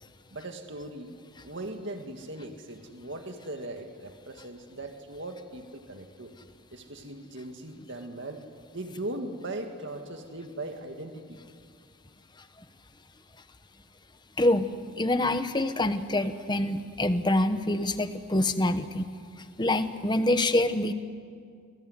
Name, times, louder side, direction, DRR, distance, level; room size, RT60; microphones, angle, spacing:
voice 1, 0.3-1.2 1.4-6.3 6.7-8.4 8.7-11.4, right 1 dB, 55° right, 5 dB, 2.0 m, -39 dB
voice 2, 14.4-14.7 15.0-19.1 19.6-20.9, left 1 dB, 20° left, 10 dB, 1.1 m, -25 dB
28.0 x 21.5 x 9.8 m, 2.2 s
head